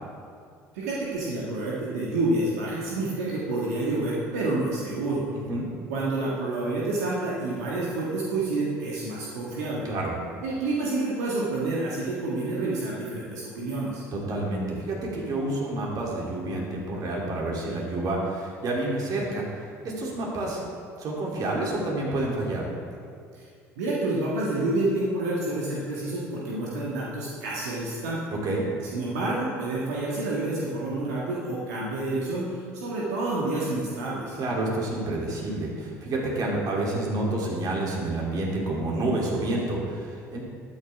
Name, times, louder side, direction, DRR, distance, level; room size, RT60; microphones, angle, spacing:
voice 1, 0.7-5.2 5.9-9.9 10.4-14.0 23.3-23.5 23.8-28.2 28.9-34.4, right 2 dB, 85° right, -6 dB, 1.6 m, -28 dB
voice 2, 5.3-5.7 9.8-10.1 14.1-20.6 21.0-22.7 28.4-28.6 34.4-40.4, right 2 dB, 50° right, -3 dB, 3.0 m, -29 dB
12.5 x 9.5 x 3.5 m, 2.3 s
hypercardioid pair, 75°, 8 cm